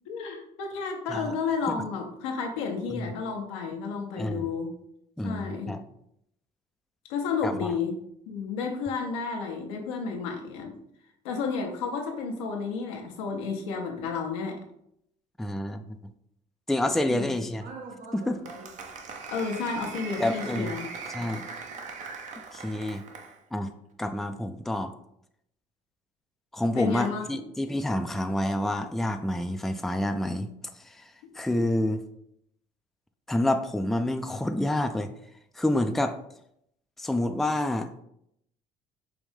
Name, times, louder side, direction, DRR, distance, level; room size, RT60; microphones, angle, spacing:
voice 1, 0.1-4.7 5.2-5.8 7.1-8.0 8.3-10.7 11.2-14.6 17.1-17.3 19.3-20.9 26.7-27.4, left 5 dB, 90° left, 2 dB, 0.8 m, -31 dB
voice 2, 5.2-5.8 7.4-7.7 15.4-16.0 16.7-17.7 18.1-18.4 20.2-20.7 21.1-21.5 22.5-23.0 23.5-23.7 24.0-24.9 26.5-30.5 30.8-31.0 31.4-32.0 33.3-35.1 35.6-36.2 37.0-38.0, left 1 dB, ahead, 7 dB, 0.4 m, -28 dB
Applause, 17.6-23.4, right 4 dB, 50° right, 0.7 m, -40 dB
4.8 x 2.6 x 3.5 m, 0.75 s
supercardioid pair, 70°, 16 cm